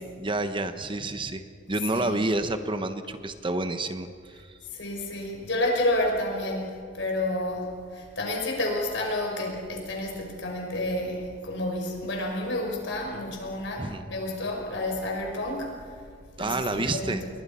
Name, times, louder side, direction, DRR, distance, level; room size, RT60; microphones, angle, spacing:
voice 1, 0.2-1.4 1.7-4.5 13.8-14.0 16.4-17.2, right 2 dB, 25° right, 9 dB, 1.1 m, -29 dB
voice 2, 1.7-2.2 4.7-15.8 16.4-17.3, left 1 dB, 70° left, 1 dB, 5.5 m, -30 dB
30.0 x 22.0 x 5.7 m, 2.1 s
head